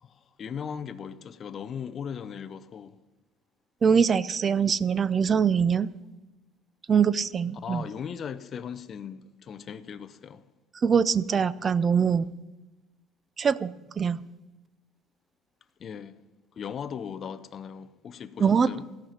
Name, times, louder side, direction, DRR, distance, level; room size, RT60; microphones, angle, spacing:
voice 1, 0.0-3.0 7.6-10.4 15.8-16.2 16.5-18.8, left 7 dB, 30° left, 0.6 m, -38 dB
voice 2, 3.8-5.9 6.9-7.8 10.8-12.3 13.4-14.2 18.4-18.7, right 6 dB, 25° right, 0.4 m, -23 dB
16.5 x 5.8 x 9.1 m
cardioid pair, 160°, 0 cm